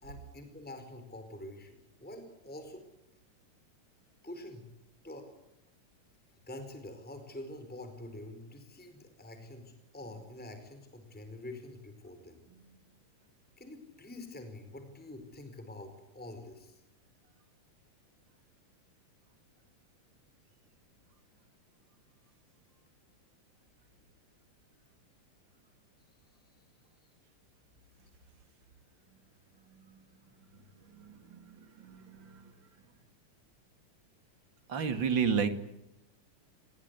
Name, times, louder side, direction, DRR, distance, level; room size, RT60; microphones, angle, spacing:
voice 1, 0.0-2.8 4.2-4.7 5.0-5.3 6.5-12.4 13.6-16.8, left 1 dB, 5° left, 7 dB, 4.3 m, -46 dB
voice 2, 30.9-32.5 34.7-35.5, right 6 dB, 40° right, 9 dB, 2.4 m, -32 dB
29.5 x 21.5 x 8.3 m, 0.87 s
omnidirectional pair, 3.7 m